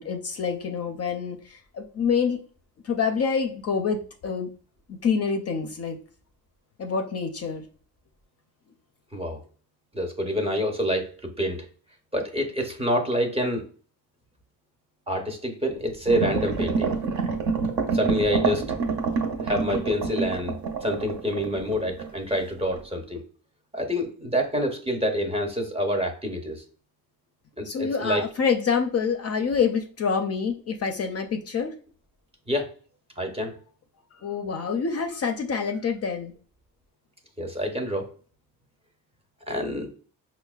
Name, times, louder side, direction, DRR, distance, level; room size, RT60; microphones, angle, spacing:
voice 1, 0.0-2.4 2.8-4.5 4.9-6.0 6.8-7.6 27.6-31.7 34.1-36.3, left 6 dB, 40° left, 4 dB, 0.4 m, -27 dB
voice 2, 9.9-11.7 12.1-13.6 15.1-16.9 17.9-18.6 19.4-20.6 20.8-23.2 23.7-26.6 27.6-28.2 32.5-32.7 33.2-33.5 37.4-38.1 39.5-39.9, equal, 15° right, 3 dB, 0.6 m, -27 dB
sound 1, 16.1-22.4 22.7-22.8, right 5 dB, 65° right, 0.7 m, -27 dB
5.4 x 2.1 x 2.3 m, 0.42 s
cardioid pair, 125°, 38 cm